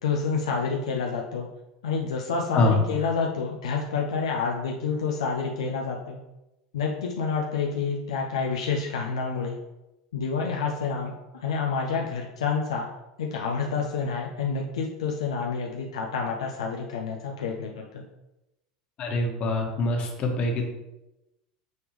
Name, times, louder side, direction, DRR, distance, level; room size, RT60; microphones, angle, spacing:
voice 1, 0.0-1.5 1.8-6.2 6.7-9.6 10.1-12.9 13.2-18.0, left 5 dB, 75° left, 0 dB, 0.7 m, -28 dB
voice 2, 19.0-20.7, left 2 dB, 45° left, 1 dB, 1.6 m, -24 dB
9.2 x 3.5 x 3.2 m, 0.95 s
hypercardioid pair, 85°, 3 cm